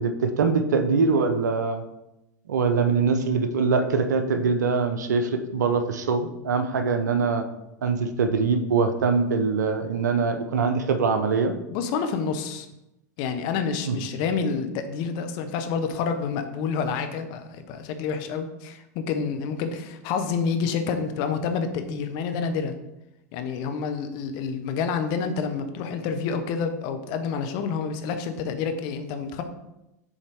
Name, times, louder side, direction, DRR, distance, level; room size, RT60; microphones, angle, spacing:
voice 1, 0.0-1.8 2.5-7.4 7.8-11.6 13.8-14.0, right 4 dB, 80° right, 7 dB, 0.7 m, -23 dB
voice 2, 11.7-12.7 13.2-22.8 23.3-29.4, left 5 dB, 50° left, 8 dB, 0.8 m, -28 dB
7.1 x 4.0 x 3.5 m, 0.90 s
hypercardioid pair, 95°, 9 cm